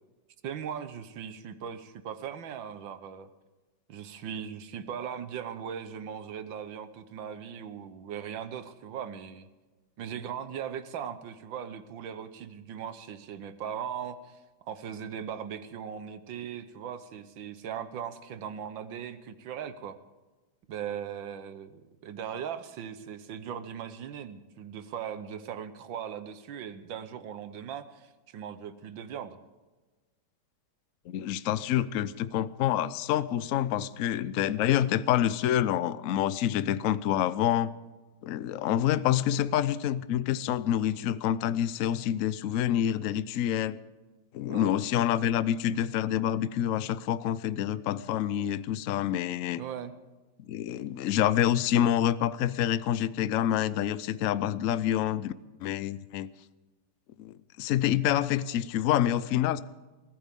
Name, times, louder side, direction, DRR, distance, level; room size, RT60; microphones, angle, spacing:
voice 1, 0.4-3.3 3.9-9.5 10.0-14.4 14.6-20.0 20.7-29.4 44.5-44.7 49.6-49.9, right 8 dB, 75° right, 1.7 m, -39 dB
voice 2, 31.1-37.7 38.2-43.8 44.3-49.6 50.5-55.3 55.6-56.3 57.2-59.6, left 11 dB, 85° left, 0.7 m, -27 dB
22.5 x 15.5 x 3.6 m
omnidirectional pair, 2.1 m